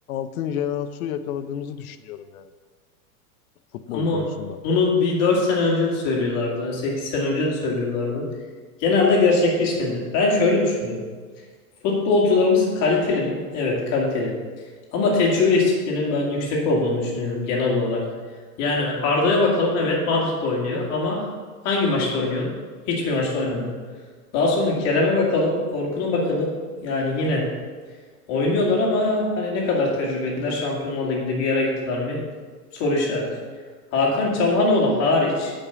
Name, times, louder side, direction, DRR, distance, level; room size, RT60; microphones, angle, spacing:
voice 1, 0.1-2.5 3.9-4.6, left 9 dB, 65° left, 11 dB, 0.8 m, -30 dB
voice 2, 3.9-4.2 4.6-8.2 8.8-11.0 11.8-14.3 14.9-18.0 18.6-21.3 21.6-22.5 22.9-23.7 24.3-26.5 26.8-27.5 28.3-32.2 32.7-33.3 33.9-35.5, left 3 dB, 35° left, -2 dB, 2.5 m, -22 dB
8.6 x 5.5 x 6.9 m, 1.5 s
supercardioid pair, 155°, 46 cm